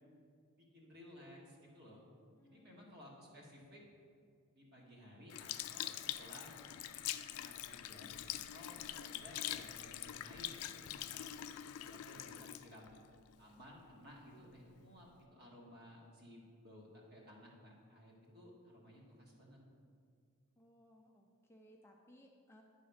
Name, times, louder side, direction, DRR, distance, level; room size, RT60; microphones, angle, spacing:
voice 1, 0.6-2.0 2.4-3.8 4.5-6.5 7.3-11.3 11.7-13.0 13.4-19.6, equal, 50° right, -3 dB, 1.6 m, -57 dB
voice 2, 2.4-2.9 20.6-22.6, equal, 10° left, 0 dB, 0.4 m, -63 dB
Sink (filling or washing) / Liquid, 5.3-13.9 14.5-14.6, left 12 dB, 80° left, 0.3 m, -44 dB
10.0 x 3.9 x 5.0 m, 2.2 s
head